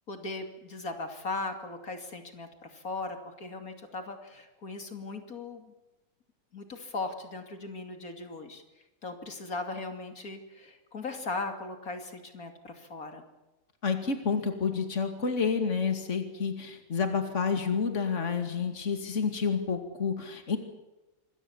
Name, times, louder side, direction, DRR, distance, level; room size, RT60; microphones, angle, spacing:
voice 1, 0.1-5.7 6.5-8.6 9.0-13.2, left 3 dB, 80° left, 6 dB, 3.1 m, -38 dB
voice 2, 13.8-20.6, left 5 dB, 55° left, 6 dB, 2.7 m, -29 dB
26.5 x 22.0 x 7.2 m, 1.0 s
omnidirectional pair, 1.5 m